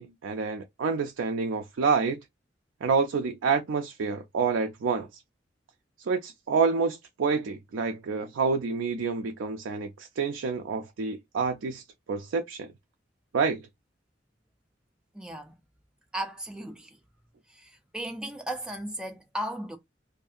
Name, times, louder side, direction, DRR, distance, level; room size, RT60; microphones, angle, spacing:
voice 1, 0.0-2.2 2.8-5.2 6.0-12.7 13.3-13.6, right 5 dB, 85° right, 0.4 m, -28 dB
voice 2, 15.1-15.5 16.1-17.0 17.5-19.8, right 1 dB, 5° right, 0.4 m, -36 dB
2.6 x 2.5 x 2.4 m
head